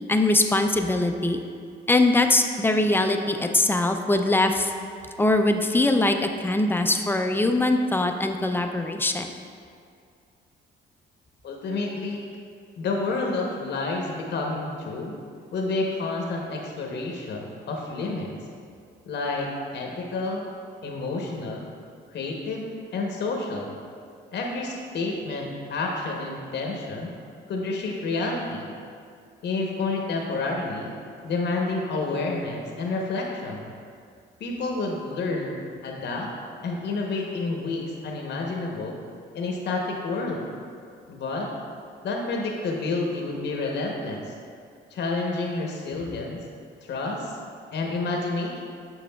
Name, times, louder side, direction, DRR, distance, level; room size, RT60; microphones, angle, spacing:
voice 1, 0.1-1.4 1.9-4.7 5.2-9.3, left 2 dB, 10° left, 5 dB, 0.4 m, -22 dB
voice 2, 11.4-12.2 12.8-15.2 15.5-18.3 19.1-20.5 20.8-21.7 22.1-23.7 24.3-27.1 27.5-28.7 29.4-30.9 31.2-33.7 34.4-35.6 35.8-36.3 36.6-39.0 39.3-40.4 41.1-41.5 42.0-44.3 44.9-46.4 46.8-47.3 47.7-48.6, left 3 dB, 60° left, 0 dB, 0.8 m, -29 dB
7.2 x 6.0 x 2.3 m, 2.2 s
cardioid pair, 90°, 20 cm